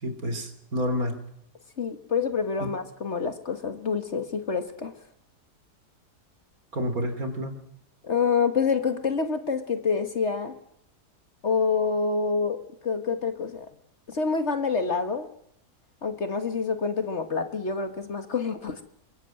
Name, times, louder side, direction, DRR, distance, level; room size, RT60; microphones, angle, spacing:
voice 1, 0.0-1.2 2.6-2.7 6.7-7.6, equal, 60° right, 8 dB, 3.6 m, -29 dB
voice 2, 1.8-4.9 8.0-10.6 11.4-13.7 14.1-15.3 16.0-18.8, left 5 dB, 45° left, 8 dB, 1.8 m, -27 dB
23.5 x 23.0 x 7.7 m, 0.72 s
omnidirectional pair, 1.7 m